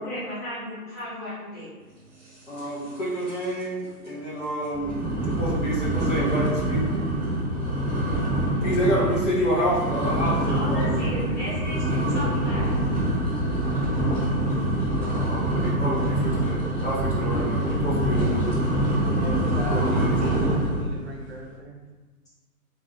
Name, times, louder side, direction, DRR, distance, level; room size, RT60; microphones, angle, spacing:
voice 1, 0.0-1.7 10.5-12.9, left 1 dB, 10° left, -12 dB, 0.6 m, -34 dB
voice 2, 2.5-5.0 5.3-6.9 8.6-11.1 15.1-18.5 19.7-20.2, equal, 50° left, -6 dB, 1.4 m, -28 dB
sound 1, 2.6-3.0 3.2-3.6 4.0-4.1 4.7-20.9, right 1 dB, 10° right, 1.1 m, -25 dB
voice 3, 19.1-21.7, equal, 40° right, -2 dB, 1.0 m, -37 dB
4.3 x 3.1 x 3.2 m, 1.3 s
figure-of-eight pair, 140°, 47 cm